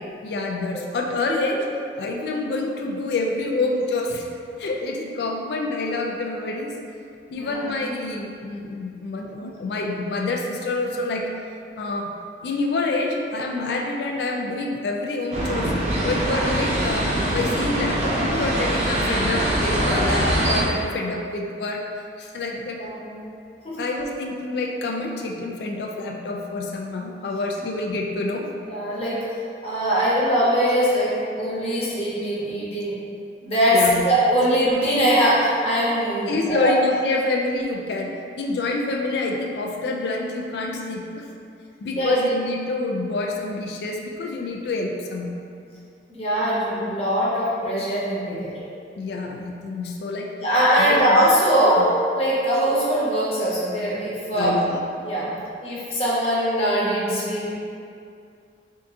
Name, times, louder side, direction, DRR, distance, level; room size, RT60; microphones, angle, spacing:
voice 1, 0.2-1.7 2.0-4.3 4.6-6.7 7.3-11.3 11.8-12.1 12.4-15.7 16.0-21.8 22.2-22.8 23.8-28.5 33.7-34.0 36.3-41.3 41.8-45.3 49.0-50.3 50.8-51.3 51.8-51.9 54.3-54.8, left 2 dB, 65° left, 1 dB, 0.3 m, -27 dB
sound 1, 15.3-20.6, right 1 dB, 35° right, 0.6 m, -23 dB
voice 2, 22.8-23.2 28.6-29.1 29.6-31.1 31.4-32.9 33.4-33.8 34.0-36.7 42.0-42.1 46.1-48.5 50.4-51.8 52.1-54.5 55.0-55.2 55.6-57.5, equal, 35° left, -9 dB, 1.0 m, -21 dB
3.5 x 2.7 x 3.6 m, 2.4 s
head